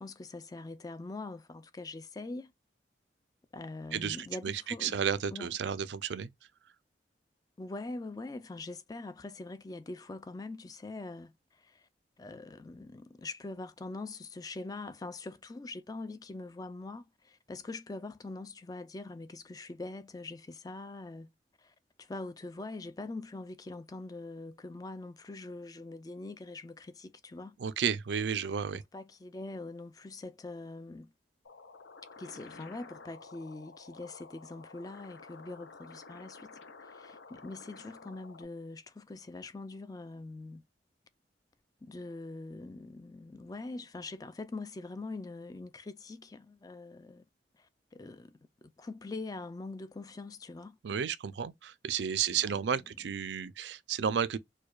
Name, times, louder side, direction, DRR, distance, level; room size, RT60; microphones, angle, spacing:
voice 1, 0.0-2.5 3.5-5.0 5.3-5.5 7.6-11.9 12.2-21.3 21.6-27.6 28.9-31.1 32.2-40.6 41.8-47.2 47.5-50.8 52.3-52.8, left 2 dB, 20° left, 0.3 m, -43 dB
voice 2, 3.9-6.3 27.6-28.8 50.8-54.4, right 7 dB, 75° right, 0.4 m, -32 dB
sound 1, 31.4-38.4, left 4 dB, 80° left, 0.6 m, -52 dB
4.5 x 2.3 x 2.3 m
head